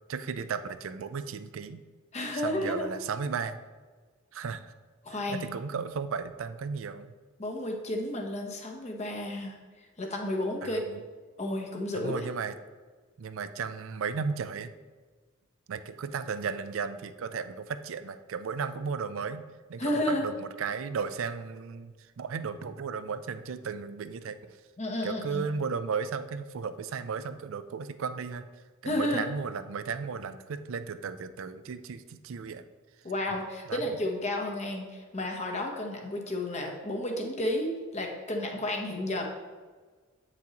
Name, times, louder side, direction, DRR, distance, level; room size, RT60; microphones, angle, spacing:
voice 1, 0.1-1.8 2.3-3.6 4.3-4.7 5.1-7.1 10.6-11.0 11.9-12.5 13.2-14.7 15.7-19.4 19.7-24.6 25.0-28.5 28.8-32.6 33.7-33.8, right 5 dB, 70° right, 12 dB, 0.4 m, -35 dB
voice 2, 2.1-2.9 5.0-5.5 7.4-9.6 10.0-10.8 11.4-12.2 19.8-20.2 24.8-25.4 28.8-29.2 33.0-39.2, left 1 dB, 30° left, 2 dB, 0.9 m, -32 dB
8.7 x 6.0 x 2.9 m, 1.4 s
head